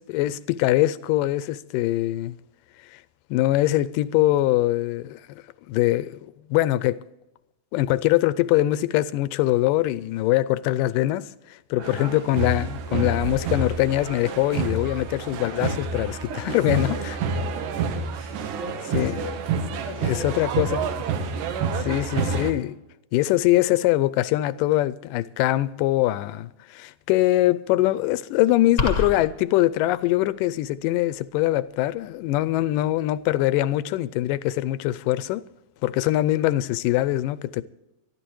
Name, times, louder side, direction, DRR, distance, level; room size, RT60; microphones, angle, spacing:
voice 1, 0.1-2.4 2.9-3.0 3.3-6.2 6.5-7.0 7.7-16.2 16.5-17.0 18.9-19.1 20.0-21.0 21.8-22.8 23.1-35.4 35.8-37.6, left 15 dB, 85° left, 2.2 m, -23 dB
voice 2, 11.8-12.2 16.0-20.4, right 1 dB, 70° right, 4.0 m, -38 dB
sound 1, 11.8-22.5, right 4 dB, 85° right, 2.8 m, -28 dB
sound 2, 28.8-29.3, left 4 dB, 40° left, 1.1 m, -24 dB
24.5 x 12.0 x 3.1 m
omnidirectional pair, 3.8 m